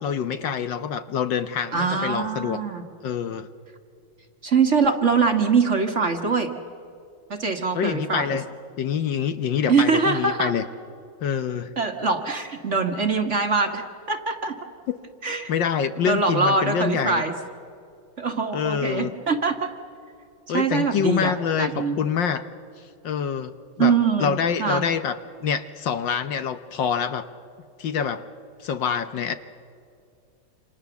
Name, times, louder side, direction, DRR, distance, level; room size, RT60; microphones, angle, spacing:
voice 1, 0.0-2.6 3.0-3.5 7.7-8.4 8.8-10.6 11.2-11.7 15.5-17.2 18.5-19.1 20.5-22.5 23.0-23.5 23.8-27.3 27.8-28.2 28.6-29.3, left 7 dB, 65° left, 10 dB, 1.5 m, -26 dB
voice 2, 1.7-2.8 4.4-6.5 7.3-8.4 9.7-10.5 11.8-14.6 15.2-15.5 16.1-17.3 18.2-19.7 20.5-21.3 21.6-22.0 23.8-24.8, right 4 dB, 40° right, 5 dB, 1.5 m, -23 dB
28.0 x 27.0 x 7.1 m, 2.4 s
omnidirectional pair, 2.3 m